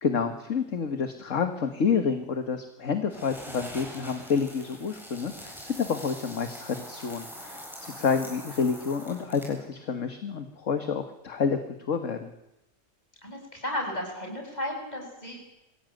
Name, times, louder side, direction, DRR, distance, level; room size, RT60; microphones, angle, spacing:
voice 1, 0.0-12.3, left 6 dB, 55° left, 7 dB, 1.9 m, -29 dB
sound 1, 3.1-9.7, equal, ahead, 8.0 m, -43 dB
voice 2, 13.2-15.4, left 1 dB, 25° left, 1 dB, 7.4 m, -34 dB
24.5 x 16.0 x 9.2 m, 0.89 s
omnidirectional pair, 1.6 m